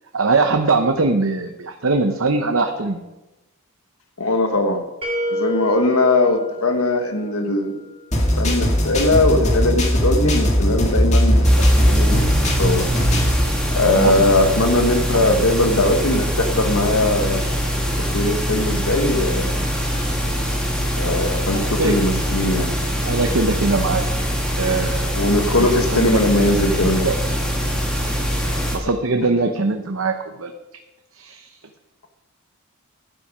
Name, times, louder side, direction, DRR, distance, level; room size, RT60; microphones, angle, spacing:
voice 1, 0.1-3.0 13.9-14.4 15.1-15.5 21.5-22.1 23.0-24.0 24.5-26.5 26.8-27.2 28.7-30.5 31.2-31.5, right 3 dB, 65° right, 5 dB, 0.9 m, -22 dB
voice 2, 4.2-4.8 5.4-7.8 8.4-12.2 12.6-12.9 13.7-17.4 18.1-19.5 20.9-22.7 25.2-27.1 28.5-28.6, left 2 dB, 80° left, 6 dB, 1.6 m, -20 dB
sound 1, 5.0-7.9, left 1 dB, 25° right, 2.4 m, -28 dB
sound 2, 8.1-13.5, equal, 30° left, 1.9 m, -18 dB
sound 3, 11.4-28.8, equal, 5° left, 2.0 m, -23 dB
11.5 x 9.9 x 5.0 m, 1.0 s
head